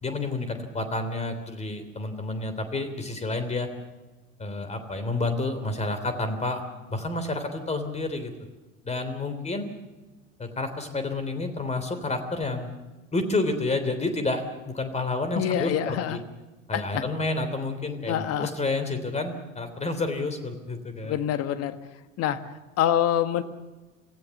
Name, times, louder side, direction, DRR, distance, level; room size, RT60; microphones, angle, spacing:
voice 1, 0.0-3.7 4.4-6.6 6.9-8.3 8.8-9.7 10.4-12.7 13.1-16.2 16.7-21.1, left 2 dB, 15° left, 9 dB, 3.3 m, -29 dB
voice 2, 15.3-16.2 16.7-17.0 18.1-18.5 21.0-21.8 22.2-22.4 22.8-23.4, left 10 dB, 40° left, 11 dB, 1.6 m, -25 dB
26.5 x 16.5 x 7.1 m, 1.1 s
figure-of-eight pair, 75°, 39 cm